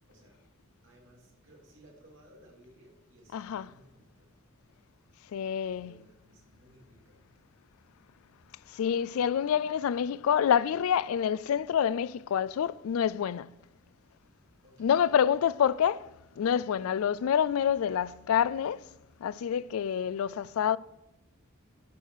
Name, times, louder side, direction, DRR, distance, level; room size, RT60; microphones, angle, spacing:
voice 1, 0.1-0.4 0.8-4.3 5.7-7.2 14.6-15.3, right 1 dB, 60° right, 2.7 m, -59 dB
voice 2, 3.3-3.7 5.3-6.0 8.7-13.5 14.8-18.8 19.2-20.8, left 8 dB, 80° left, 0.3 m, -27 dB
12.0 x 6.6 x 4.7 m
head